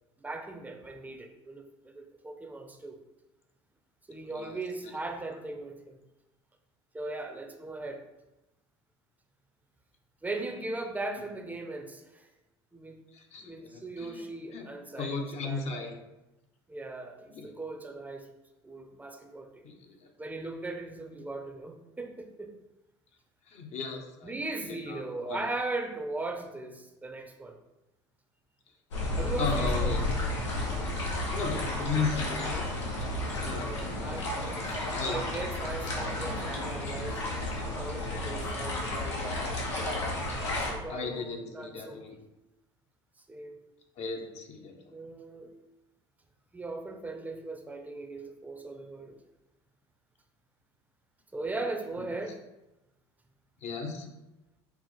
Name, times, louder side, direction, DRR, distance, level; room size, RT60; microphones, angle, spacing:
voice 1, 0.2-3.0 4.1-6.0 6.9-8.0 10.2-12.3 12.7-13.0 13.4-15.1 15.4-15.8 16.7-18.3 18.6-19.7 20.2-22.5 24.2-27.6 29.2-29.9 33.6-37.2 37.7-39.6 40.6-42.2 43.3-43.6 44.9-45.5 46.5-49.2 51.3-52.4, right 2 dB, 10° right, 4 dB, 0.6 m, -38 dB
voice 2, 13.1-13.7 14.0-14.1 14.5-14.7 15.0-15.9 17.3-17.5 19.6-20.1 23.5-24.3 24.7-25.5 29.4-30.1 31.3-32.6 33.4-34.2 34.9-35.2 40.9-42.2 44.0-44.7 53.6-54.1, left 4 dB, 50° left, 3 dB, 0.8 m, -35 dB
sound 1, 28.9-40.7, left 1 dB, 85° left, 1.0 m, -32 dB
4.6 x 2.0 x 4.1 m, 0.97 s
hypercardioid pair, 75°, 15 cm